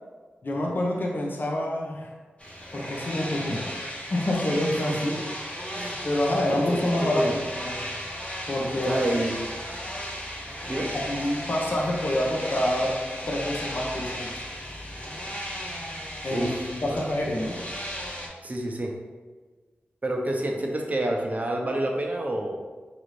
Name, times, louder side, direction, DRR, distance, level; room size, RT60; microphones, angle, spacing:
voice 1, 0.4-2.1 2.7-5.1 6.0-7.9 8.5-9.0 10.9-13.0 13.3-14.4 16.2-17.6, left 1 dB, 50° left, -1 dB, 0.7 m, -27 dB
sound 1, 2.4-18.3, equal, 30° left, 1.1 m, -35 dB
voice 2, 6.5-7.3 8.8-9.4 10.7-10.9 16.3-17.0 18.4-18.9 20.0-22.6, right 1 dB, 35° right, 1 dB, 0.7 m, -28 dB
4.8 x 2.6 x 3.3 m, 1.4 s
cardioid pair, 40°, 4 cm